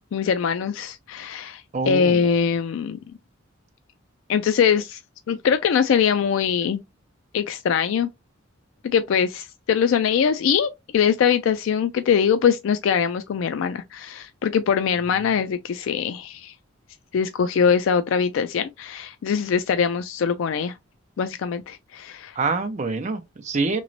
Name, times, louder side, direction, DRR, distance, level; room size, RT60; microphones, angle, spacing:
voice 1, 0.1-3.0 4.3-5.0 5.3-6.8 7.3-8.1 8.8-16.5 17.1-20.7 21.2-22.4, left 7 dB, 65° left, 0.3 m, -22 dB
voice 2, 1.7-2.2 22.4-23.8, right 3 dB, 35° right, 0.5 m, -25 dB
3.0 x 2.9 x 2.6 m
head